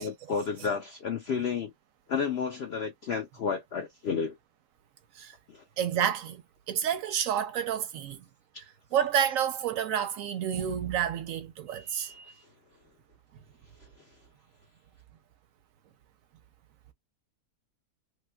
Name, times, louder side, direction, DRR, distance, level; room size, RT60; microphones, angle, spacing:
voice 1, 0.0-1.7 2.1-4.3 5.5-5.6, left 6 dB, 85° left, 0.5 m, -31 dB
voice 2, 5.8-6.4 6.7-8.2 8.9-12.3, right 9 dB, 70° right, 0.8 m, -29 dB
3.2 x 2.9 x 2.2 m
omnidirectional pair, 1.7 m